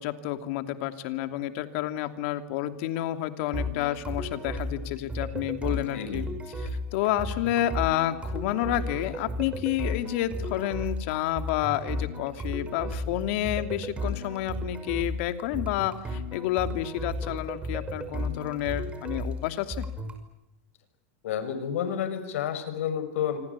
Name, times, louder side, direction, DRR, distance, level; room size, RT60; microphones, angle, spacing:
voice 1, 0.0-6.3 6.9-19.9, left 13 dB, 60° left, 8 dB, 2.8 m, -30 dB
sound 1, 3.5-20.2, left 1 dB, 15° right, 5.9 m, -34 dB
voice 2, 5.7-6.2 21.2-23.4, left 9 dB, 75° left, 11 dB, 6.3 m, -30 dB
27.5 x 25.5 x 8.5 m, 0.84 s
supercardioid pair, 130°, 7 cm